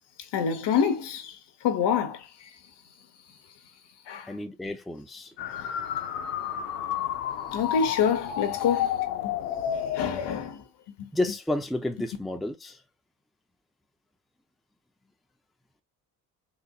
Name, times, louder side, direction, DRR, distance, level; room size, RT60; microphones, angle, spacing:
voice 1, 0.3-1.4 1.6-2.3 4.1-4.3 7.5-8.9 9.2-9.3 9.9-10.6 11.0-11.1, left 7 dB, 60° left, 1.1 m, -26 dB
voice 2, 4.3-5.3 11.1-12.8, left 1 dB, ahead, 0.6 m, -31 dB
sound 1, 5.4-10.4, left 10 dB, 85° left, 0.7 m, -30 dB
4.2 x 2.5 x 2.4 m
hypercardioid pair, 55°, 46 cm